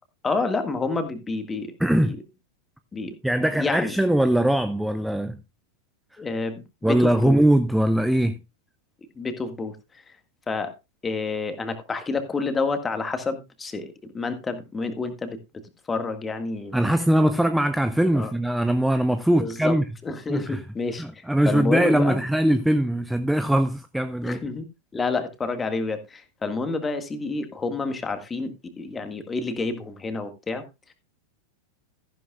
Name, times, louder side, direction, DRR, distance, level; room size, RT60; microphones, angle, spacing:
voice 1, 0.2-1.8 2.0-2.2 2.9-3.1 3.6-4.0 6.2-7.4 9.2-10.2 10.5-10.7 11.0-15.6 15.9-16.8 18.1-18.3 19.4-19.8 20.0-22.2 24.2-24.7 24.9-30.6, left 3 dB, 15° left, 1.8 m, -29 dB
voice 2, 1.8-2.1 3.2-5.4 6.1-6.2 6.8-8.4 16.7-19.8 20.3-20.6 21.0-24.4, right 1 dB, 5° right, 0.6 m, -21 dB
14.0 x 11.0 x 2.4 m
figure-of-eight pair, 90°, 0 cm